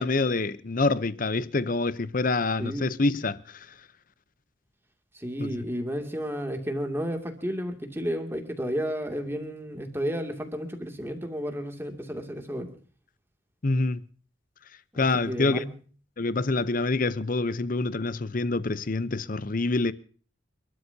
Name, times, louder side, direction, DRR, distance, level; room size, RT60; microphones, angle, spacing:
voice 1, 0.0-3.7 5.4-5.5 13.6-14.0 15.0-15.6 16.2-19.9, left 3 dB, 40° left, 0.7 m, -26 dB
voice 2, 5.1-12.7 14.9-15.7, equal, 10° right, 2.4 m, -32 dB
29.5 x 12.5 x 2.8 m
head